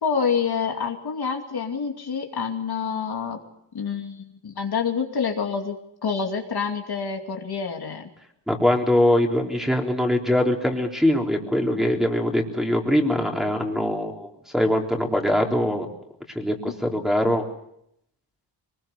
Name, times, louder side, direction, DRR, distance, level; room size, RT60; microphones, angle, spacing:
voice 1, 0.0-3.4 3.7-5.8 6.0-8.1, left 6 dB, 55° left, 2 dB, 2.7 m, -27 dB
voice 2, 8.5-15.9 16.4-17.4, left 1 dB, ahead, 0 dB, 3.7 m, -22 dB
22.5 x 20.5 x 6.8 m, 0.78 s
cardioid pair, 80°, 45 cm